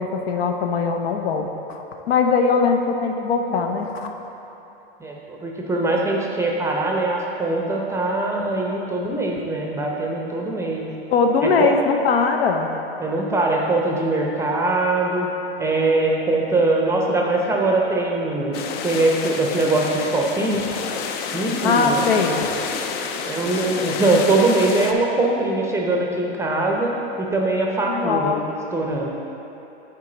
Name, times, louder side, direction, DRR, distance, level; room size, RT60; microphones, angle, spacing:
voice 1, 0.0-4.1 11.1-12.7 21.6-22.5 27.9-28.4, left 5 dB, 65° left, 4 dB, 0.7 m, -20 dB
voice 2, 5.0-10.9 11.4-11.7 13.0-15.3 15.6-20.7 21.3-22.0 23.2-28.4 28.7-29.1, right 2 dB, 10° right, -1 dB, 0.6 m, -22 dB
sound 1, 18.5-24.9, left 6 dB, 30° left, 0.4 m, -29 dB
7.4 x 4.8 x 3.9 m, 3.0 s
hypercardioid pair, 110°, 32 cm